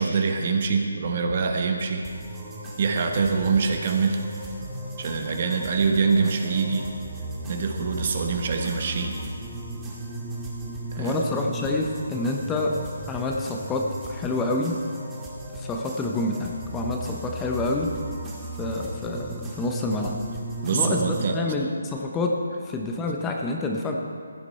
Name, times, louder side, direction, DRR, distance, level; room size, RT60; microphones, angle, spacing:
voice 1, 0.0-2.1 2.8-4.2 5.0-7.0 7.5-9.2 10.9-11.1 20.6-21.4, right 4 dB, 45° right, 4 dB, 1.3 m, -24 dB
sound 1, 2.0-21.2, right 1 dB, 15° right, 1.9 m, -36 dB
voice 2, 11.0-12.8 13.1-14.8 15.6-18.0 18.6-20.2 20.7-23.9, left 2 dB, 10° left, 1 dB, 0.8 m, -27 dB
16.0 x 9.6 x 4.3 m, 2.2 s
figure-of-eight pair, 160°, 0 cm